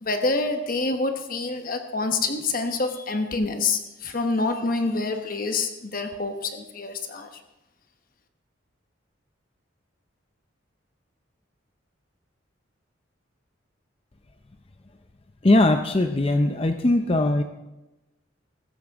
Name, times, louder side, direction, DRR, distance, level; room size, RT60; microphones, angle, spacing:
voice 1, 0.0-7.3, left 3 dB, 45° left, 6 dB, 1.1 m, -27 dB
voice 2, 15.4-17.4, left 2 dB, 30° left, 7 dB, 0.5 m, -20 dB
15.0 x 14.5 x 3.6 m, 0.98 s
head